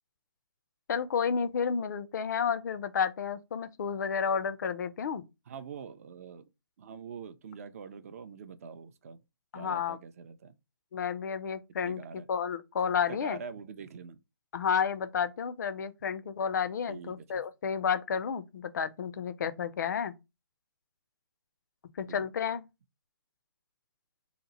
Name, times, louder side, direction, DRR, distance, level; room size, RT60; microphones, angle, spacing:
voice 1, 0.9-5.2 9.5-10.0 10.9-13.4 14.5-20.1 22.0-22.7, left 7 dB, 45° left, 0.4 m, -31 dB
voice 2, 5.5-6.5 6.8-9.2 9.5-10.5 11.8-12.3 13.1-14.2 16.9-17.4 22.1-22.3, right 6 dB, 35° right, 0.4 m, -44 dB
2.8 x 2.0 x 3.9 m
hypercardioid pair, 145°, 13 cm